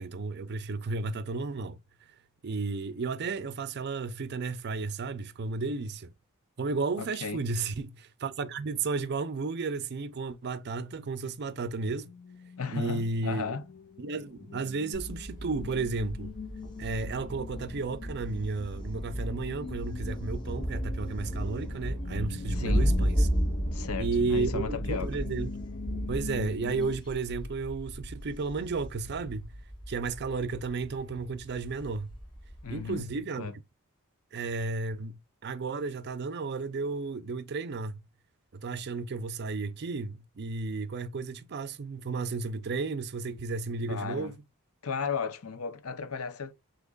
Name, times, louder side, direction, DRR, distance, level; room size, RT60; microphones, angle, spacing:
voice 1, 0.0-1.8 2.4-6.1 6.6-12.1 12.7-13.6 14.0-16.3 16.8-23.3 24.0-25.5 26.1-29.5 29.9-32.1 32.7-33.6 34.3-38.0 38.5-44.3, right 4 dB, 50° right, 0.5 m, -33 dB
voice 2, 7.0-7.4 12.6-13.6 22.5-22.9 23.7-25.2 32.6-33.1 33.4-33.6 43.9-44.3 44.8-46.5, left 5 dB, 75° left, 0.7 m, -35 dB
sound 1, 12.0-27.0, left 4 dB, 40° left, 0.4 m, -44 dB
Thunder, 14.9-33.0, equal, 20° left, 1.9 m, -34 dB
6.3 x 2.9 x 2.4 m
head